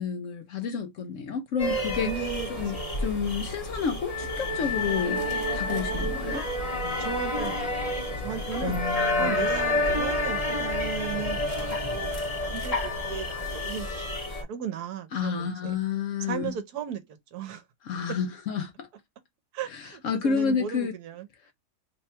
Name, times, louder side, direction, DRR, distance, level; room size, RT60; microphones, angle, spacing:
voice 1, 0.0-2.1 2.5-5.2 5.5-6.4 8.6-9.5 15.1-16.6 17.8-18.9 19.7-20.9, left 6 dB, 65° left, 0.8 m, -30 dB
sound 1, 1.6-14.4, left 1 dB, 30° left, 0.9 m, -29 dB
voice 2, 2.0-3.0 7.0-7.7 8.0-8.8 9.2-15.7 16.2-17.0 17.3-17.6 19.5-21.5, right 8 dB, 75° right, 1.2 m, -36 dB
3.2 x 2.2 x 4.2 m
omnidirectional pair, 1.7 m